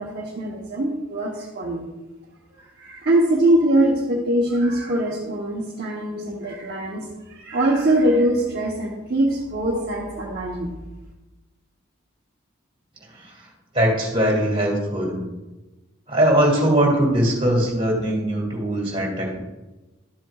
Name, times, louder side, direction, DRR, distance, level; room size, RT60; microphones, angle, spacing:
voice 1, 0.0-1.9 2.8-10.7, right 1 dB, 50° right, -3 dB, 1.0 m, -22 dB
voice 2, 13.7-15.2 16.1-19.4, right 1 dB, 25° right, -2 dB, 2.3 m, -21 dB
12.0 x 7.6 x 2.3 m, 1.1 s
head